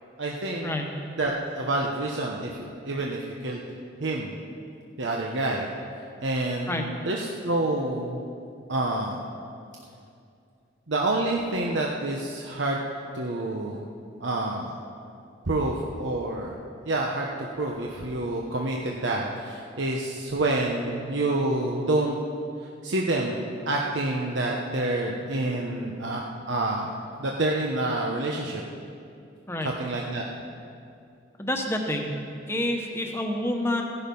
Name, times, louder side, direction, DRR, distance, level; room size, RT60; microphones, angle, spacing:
voice 1, 0.2-0.7 1.2-3.6 4.0-4.3 5.0-5.7 6.2-8.2 8.7-9.2 10.9-12.8 13.1-13.9 14.2-14.8 15.5-16.6 16.8-22.2 22.6-23.4 23.7-28.6 29.6-30.2, right 2 dB, 75° right, -1 dB, 1.0 m, -28 dB
voice 2, 31.4-32.1 32.5-33.8, left 1 dB, 15° left, 2 dB, 1.2 m, -28 dB
15.5 x 11.0 x 5.5 m, 2.5 s
head